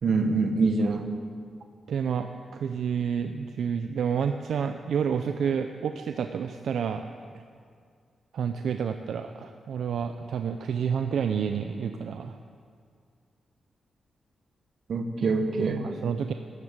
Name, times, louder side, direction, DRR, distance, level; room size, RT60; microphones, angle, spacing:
voice 1, 0.0-1.1 14.9-15.9, right 3 dB, 60° right, 6 dB, 1.3 m, -25 dB
voice 2, 1.9-7.1 7.3-7.4 8.3-12.4 15.8-16.3, right 7 dB, 80° right, 7 dB, 0.6 m, -29 dB
13.5 x 11.0 x 8.1 m, 2.1 s
wide cardioid pair, 115°, 0 cm